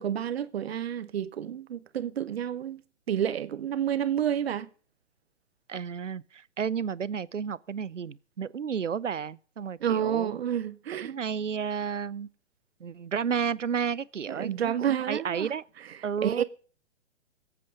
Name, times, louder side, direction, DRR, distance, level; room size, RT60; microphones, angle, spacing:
voice 1, 0.0-2.8 3.1-4.7 9.8-11.2 14.3-15.5 15.9-16.4, right 9 dB, 55° right, 0.9 m, -30 dB
voice 2, 5.7-10.3 11.0-12.3 12.8-15.6 16.0-16.4, right 7 dB, 90° right, 0.7 m, -32 dB
20.5 x 8.5 x 5.1 m
figure-of-eight pair, 125°, 36 cm